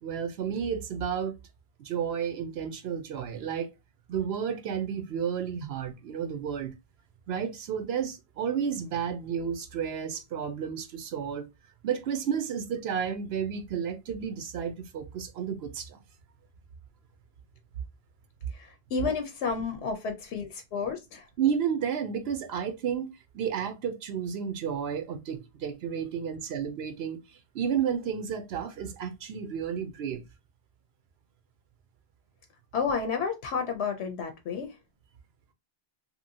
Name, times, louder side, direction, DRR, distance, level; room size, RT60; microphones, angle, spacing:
voice 1, 0.0-1.3 1.8-3.7 4.1-6.7 7.3-11.5 11.8-16.0 21.4-23.1 23.3-30.2, right 7 dB, 70° right, 0.8 m, -32 dB
voice 2, 18.5-21.3 32.7-34.7, left 5 dB, 80° left, 0.9 m, -31 dB
2.9 x 2.7 x 2.6 m
omnidirectional pair, 1.1 m